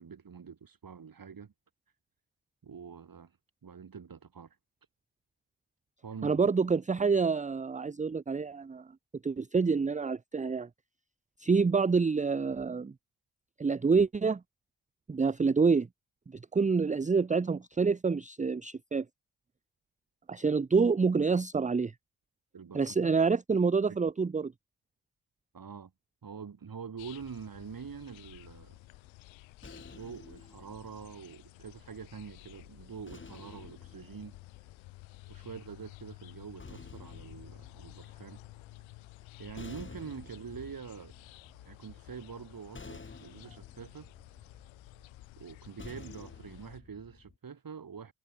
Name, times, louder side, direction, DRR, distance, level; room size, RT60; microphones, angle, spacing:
voice 1, 0.0-1.5 2.6-3.4 3.6-4.6 6.0-6.4 22.5-23.1 23.9-24.0 25.5-25.9 26.2-28.8 29.9-34.4 35.3-38.4 39.4-41.1 41.6-44.1 45.4-48.1, right 6 dB, 50° right, 4.2 m, -45 dB
voice 2, 6.2-8.9 9.2-10.7 11.4-12.9 13.6-14.4 15.1-15.9 16.5-19.0 20.3-21.9 22.7-24.5, right 5 dB, 15° right, 0.7 m, -27 dB
sound 1, 27.0-46.8, left 21 dB, 85° left, 3.5 m, -53 dB
sound 2, 28.8-32.1 33.1-35.3 36.3-47.4, left 4 dB, 25° left, 2.2 m, -52 dB
hypercardioid pair, 45°, 45 cm